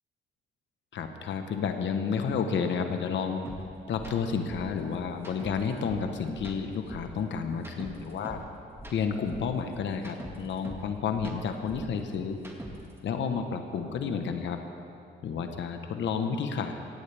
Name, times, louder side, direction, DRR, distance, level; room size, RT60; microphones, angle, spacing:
voice 1, 0.9-3.4 3.9-8.4 8.9-12.4 13.0-14.6 15.2-16.7, left 6 dB, 70° left, 6 dB, 1.2 m, -31 dB
sound 1, 3.4-3.6 3.9-4.1 4.5-6.1 6.3-8.5 8.7-10.9 11.1-13.0, right 1 dB, 10° right, 2.0 m, -43 dB
17.0 x 16.0 x 3.5 m, 2.6 s
cardioid pair, 90°, 20 cm